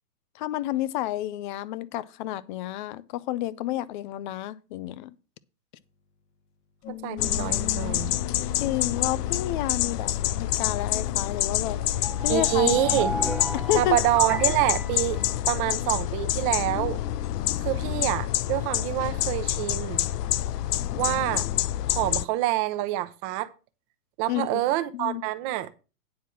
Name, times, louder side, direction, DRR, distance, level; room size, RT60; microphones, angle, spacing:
voice 1, 0.3-5.1 8.6-10.1 10.4-11.8 12.2-12.9 13.5-14.0 24.3-25.2, left 14 dB, 30° left, 0.5 m, -30 dB
sound 1, 6.8-12.5 13.1-18.4, left 6 dB, 50° left, 1.3 m, -43 dB
voice 2, 6.9-8.1 12.3-13.2 13.7-15.2 15.5-17.0 17.6-20.1 20.9-21.5 21.9-23.5 24.2-25.7, right 15 dB, 30° right, 0.8 m, -26 dB
sound 2, 7.2-22.3, left 13 dB, 75° left, 0.6 m, -27 dB
sound 3, 12.0-15.9, equal, ahead, 0.9 m, -35 dB
9.5 x 4.6 x 7.1 m
hypercardioid pair, 130°, 48 cm